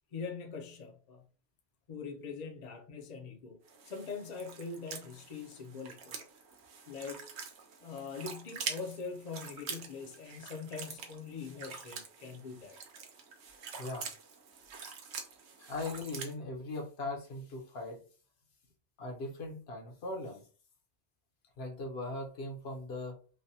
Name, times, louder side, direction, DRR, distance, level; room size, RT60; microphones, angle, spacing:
voice 1, 0.1-1.2 1.9-3.6 3.9-6.2 6.9-7.2 7.8-12.8 15.6-15.8, left 5 dB, 50° left, 0.6 m, -43 dB
sound 1, 3.7-16.3, right 6 dB, 75° right, 0.9 m, -45 dB
voice 2, 15.7-18.0 19.0-20.4 21.6-23.2, left 2 dB, 65° left, 1.0 m, -39 dB
3.3 x 2.2 x 2.7 m
omnidirectional pair, 1.2 m